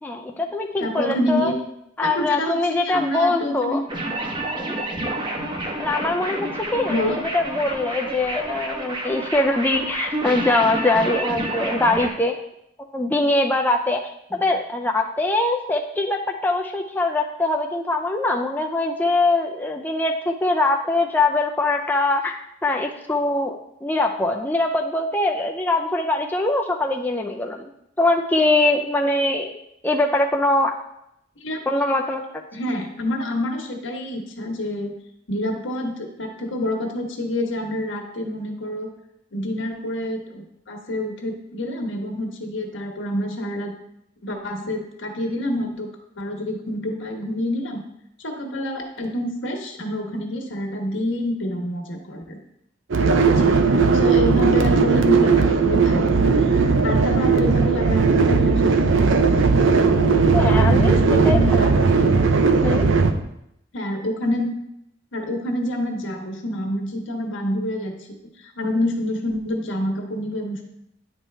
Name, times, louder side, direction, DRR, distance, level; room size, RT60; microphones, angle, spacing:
voice 1, 0.0-1.5 2.0-3.8 4.4-4.7 5.8-12.4 12.9-14.0 14.3-27.7 28.0-29.5 29.8-30.7 31.7-32.2 56.9-57.0 60.3-61.0 61.2-61.6 62.6-62.9, left 2 dB, 10° left, 1 dB, 0.4 m, -22 dB
voice 2, 0.8-1.6 2.0-3.8 6.9-7.2 31.4-31.6 32.5-35.0 35.3-38.9 39.3-43.7 44.2-45.9 46.2-47.8 48.2-52.4 53.1-53.6 53.9-58.9 60.5-62.1 63.7-64.5 65.1-67.9 68.2-70.6, left 1 dB, 80° left, 2 dB, 1.3 m, -27 dB
sound 1, 3.9-12.1, right 1 dB, 25° right, 0.9 m, -29 dB
sound 2, 52.9-63.1, right 4 dB, 85° right, 0.6 m, -17 dB
9.9 x 4.6 x 3.3 m, 0.78 s
head